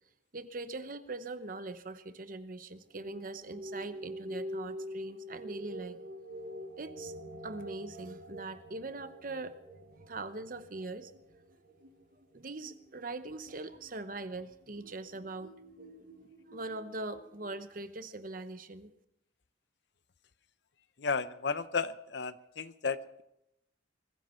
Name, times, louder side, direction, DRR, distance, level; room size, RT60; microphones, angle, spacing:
voice 1, 0.3-6.0 6.8-7.1 7.4-9.6 10.1-11.1 12.3-15.5 15.8-18.9, right 2 dB, 45° right, 11 dB, 0.9 m, -42 dB
sound 1, 2.9-17.5, equal, 75° right, 4.5 m, -47 dB
voice 2, 21.0-23.2, left 5 dB, 65° left, 14 dB, 0.7 m, -34 dB
22.0 x 15.0 x 4.5 m, 0.83 s
head